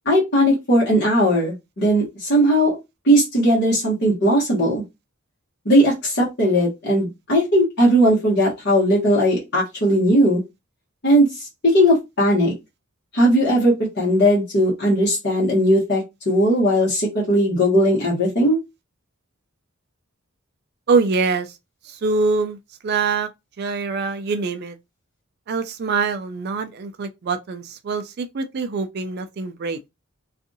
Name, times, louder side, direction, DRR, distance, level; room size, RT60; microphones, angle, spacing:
voice 1, 0.0-2.8 3.0-4.8 5.6-10.4 11.0-11.3 11.6-12.5 13.1-18.6, equal, 50° left, 1.2 m, -18 dB
voice 2, 20.9-21.5 21.9-22.6 22.8-23.3 23.6-24.8 25.5-29.8, right 4 dB, 50° right, 0.4 m, -24 dB
2.6 x 2.4 x 2.6 m
head